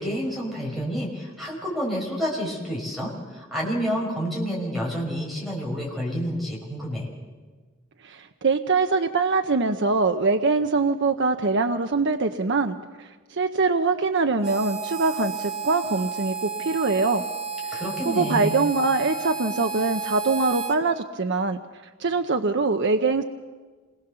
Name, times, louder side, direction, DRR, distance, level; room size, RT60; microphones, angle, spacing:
voice 1, 0.0-7.1 17.7-18.6, equal, ahead, -3 dB, 5.8 m, -29 dB
voice 2, 8.0-17.2 17.7-17.8 18.1-21.6 22.0-23.2, right 3 dB, 55° right, 6 dB, 0.8 m, -23 dB
Harmonica, 14.4-20.8, right 5 dB, 30° right, 2.0 m, -32 dB
27.0 x 20.5 x 6.9 m, 1.4 s
head